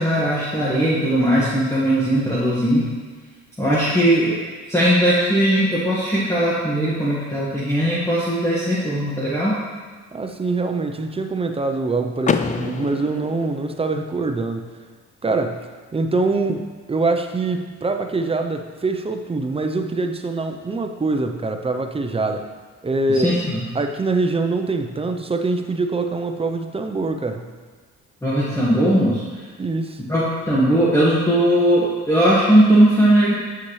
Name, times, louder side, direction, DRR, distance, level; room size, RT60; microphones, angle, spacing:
voice 1, 0.0-2.9 3.6-4.4 4.7-9.5 23.1-23.7 28.2-29.2 30.1-33.3, right 1 dB, 10° left, -9 dB, 1.5 m, -18 dB
voice 2, 10.1-14.7 15.2-22.5 22.8-23.4 23.7-27.5 29.6-30.0, right 3 dB, 20° right, 6 dB, 0.6 m, -24 dB
Car / Door, 12.2-14.2, left 6 dB, 25° left, 0.3 m, -26 dB
8.2 x 5.8 x 3.2 m, 1.5 s
cardioid pair, 90°, 30 cm